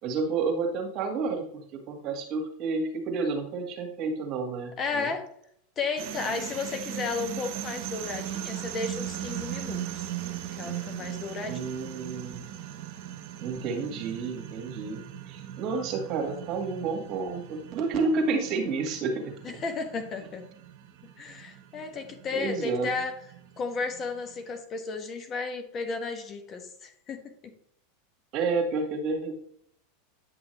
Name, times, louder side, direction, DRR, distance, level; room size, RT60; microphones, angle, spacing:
voice 1, 0.0-5.1 11.5-12.5 13.4-19.6 22.3-22.9 28.3-29.3, right 4 dB, 45° right, 4 dB, 2.0 m, -30 dB
voice 2, 4.8-5.3 5.8-10.0 10.5-11.8 19.4-20.4 21.2-23.1 23.6-27.5, left 4 dB, 35° left, 6 dB, 1.5 m, -33 dB
sound 1, 6.0-24.4, right 11 dB, 65° right, 1.2 m, -39 dB
9.5 x 6.1 x 3.3 m, 0.66 s
hypercardioid pair, 110°, 0 cm